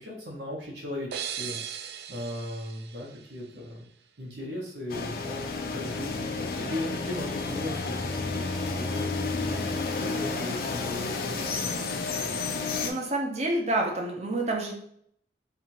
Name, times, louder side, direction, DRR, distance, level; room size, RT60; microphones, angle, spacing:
voice 1, 0.0-3.9 4.2-12.3, left 1 dB, 85° right, -3 dB, 1.1 m, -38 dB
sound 1, 1.1-3.9, right 8 dB, 65° right, 0.3 m, -39 dB
sound 2, 4.9-12.9, left 3 dB, 55° left, 0.5 m, -31 dB
voice 2, 12.8-14.7, right 2 dB, 40° right, 1 dB, 0.8 m, -28 dB
3.5 x 2.4 x 4.5 m, 0.67 s
head